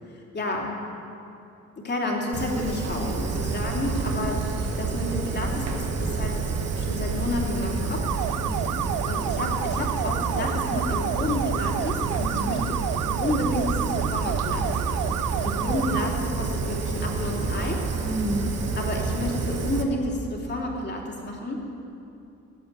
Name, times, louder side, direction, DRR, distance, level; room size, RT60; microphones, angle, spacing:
voice 1, 0.3-0.7 1.8-4.4 4.8-6.4 6.8-8.1 9.1-12.8 13.2-15.2 15.4-17.8 18.8-21.6, left 2 dB, 35° left, -1 dB, 3.2 m, -30 dB
Fire, 2.3-19.8, right 4 dB, 55° right, 1.6 m, -29 dB
sound 1, 8.0-16.1, right 12 dB, 85° right, 0.5 m, -30 dB
voice 2, 8.4-8.8 12.3-12.5 15.3-15.7 18.0-18.5, right 1 dB, 40° right, -7 dB, 3.0 m, -32 dB
17.0 x 9.0 x 7.6 m, 2.7 s
cardioid pair, 90°, 30 cm